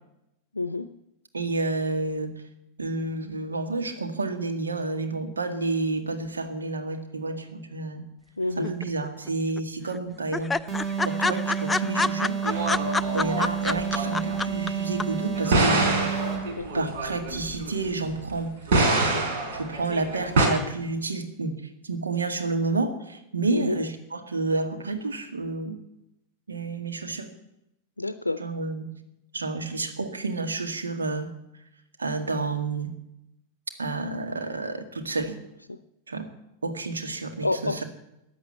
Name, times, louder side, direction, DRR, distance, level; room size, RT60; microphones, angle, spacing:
voice 1, 0.5-0.9 8.4-8.7 16.5-16.9 23.5-23.8 28.0-28.4 35.7-35.8 37.4-37.8, left 2 dB, 80° left, 13 dB, 0.6 m, -29 dB
voice 2, 1.3-2.3 2.8-8.0 8.6-10.6 11.1-12.4 13.1-16.1 16.7-21.5 21.8-25.8 26.5-27.3 28.4-28.9 29.3-31.3 32.0-32.9 33.8-35.4 36.1-36.3 36.6-37.8, right 3 dB, 75° right, 6 dB, 1.9 m, -30 dB
sound 1, 8.6-9.3 9.6-9.7 9.9-10.0 10.3-14.7 15.0-15.1, left 3 dB, 10° left, 0.5 m, -26 dB
sound 2, 10.7-16.6, right 7 dB, 25° right, 3.9 m, -30 dB
sound 3, 12.4-14.4 15.3-18.3 18.7-20.5, right 2 dB, 55° right, 4.0 m, -25 dB
15.0 x 9.9 x 8.3 m, 0.87 s
figure-of-eight pair, 90°, 0 cm